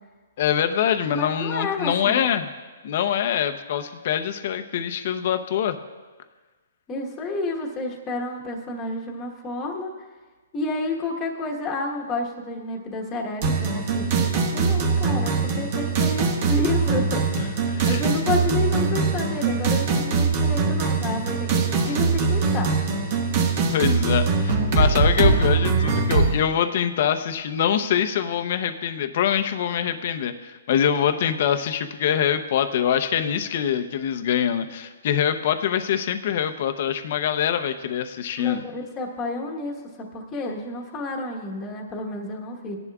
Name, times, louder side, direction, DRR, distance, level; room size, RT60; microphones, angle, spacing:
voice 1, 0.4-2.5 2.8-5.8 17.4-18.0 21.8-22.0 23.7-38.6, left 9 dB, 50° left, 8 dB, 0.7 m, -24 dB
voice 2, 1.1-2.2 6.9-9.9 10.5-22.7 38.4-42.8, left 2 dB, 15° left, -1 dB, 1.3 m, -30 dB
sound 1, 13.4-26.3, right 4 dB, 40° right, 1.6 m, -22 dB
17.5 x 11.0 x 2.4 m, 1.3 s
hypercardioid pair, 155°, 0 cm